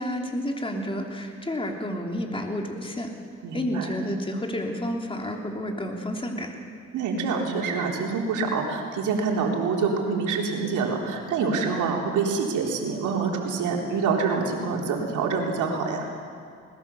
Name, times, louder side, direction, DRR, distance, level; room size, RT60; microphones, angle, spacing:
voice 1, 0.0-3.1 3.5-6.6, equal, 15° left, 2 dB, 3.3 m, -30 dB
voice 2, 3.4-3.9 6.9-16.1, right 5 dB, 80° right, 0 dB, 3.7 m, -26 dB
21.0 x 20.0 x 7.1 m, 2.4 s
cardioid pair, 90°, 30 cm